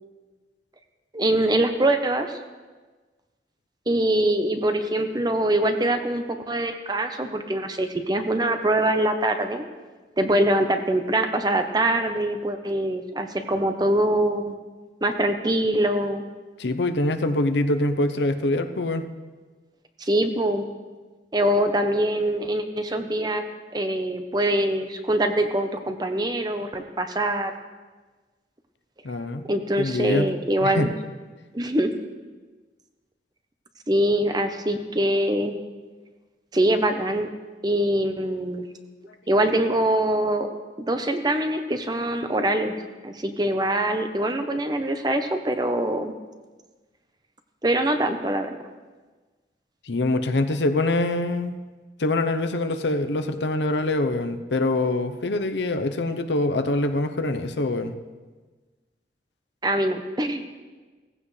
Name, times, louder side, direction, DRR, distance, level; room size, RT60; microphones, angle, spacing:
voice 1, 1.1-2.4 3.9-9.6 10.2-14.6 15.0-16.2 20.0-20.7 21.3-23.4 23.7-27.5 29.5-30.9 31.5-31.9 33.9-35.6 36.5-37.3 37.6-38.7 39.3-40.5 40.8-46.1 47.6-48.5 59.6-60.4, right 1 dB, 25° right, 7 dB, 0.9 m, -23 dB
voice 2, 16.6-19.1 29.0-29.4 29.8-30.3 30.6-30.9 49.8-51.6 52.0-57.9, left 2 dB, 85° left, 8 dB, 0.9 m, -24 dB
17.0 x 15.0 x 3.3 m, 1.3 s
head